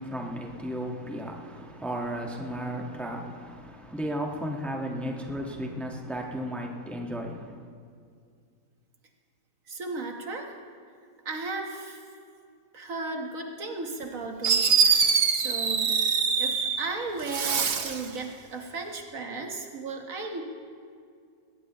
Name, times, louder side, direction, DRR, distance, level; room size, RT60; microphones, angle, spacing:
voice 1, 0.0-7.6, equal, ahead, 1.3 m, -34 dB
voice 2, 9.7-10.6 11.2-12.0 12.7-16.0 16.4-20.4, right 3 dB, 65° right, 1.7 m, -35 dB
Fireworks, 14.0-14.1 14.4-16.9 17.2-18.1, right 5 dB, 50° right, 1.0 m, -24 dB
20.5 x 17.5 x 3.0 m
omnidirectional pair, 1.6 m